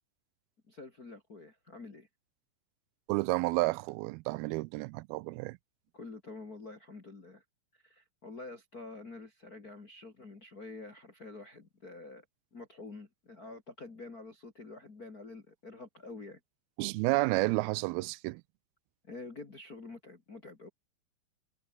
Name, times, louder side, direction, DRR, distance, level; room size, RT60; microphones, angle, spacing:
voice 1, 0.7-2.1 5.9-7.4 7.7-12.2 12.5-16.4 19.0-20.7, left 3 dB, 25° left, 2.6 m, -47 dB
voice 2, 3.1-5.6 16.8-18.4, right 23 dB, 90° right, 2.4 m, -31 dB
omnidirectional pair, 4.3 m